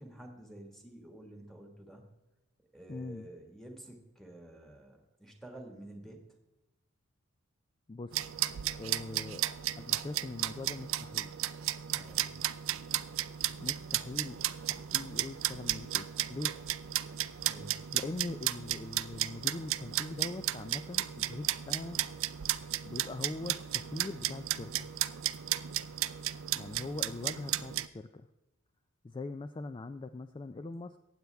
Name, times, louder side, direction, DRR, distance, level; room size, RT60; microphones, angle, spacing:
voice 1, 0.0-2.0 2.7-6.2 11.9-12.3 17.4-17.8, right 1 dB, ahead, 2 dB, 1.7 m, -50 dB
voice 2, 2.9-3.3 7.9-8.2 8.8-9.4 9.8-11.3 13.6-16.6 17.9-22.0 22.8-24.9 26.6-28.3 29.0-31.0, left 2 dB, 25° left, 10 dB, 0.3 m, -42 dB
sound 1, 8.1-27.9, right 13 dB, 65° right, 0.4 m, -34 dB
15.5 x 9.3 x 3.4 m, 1.0 s
head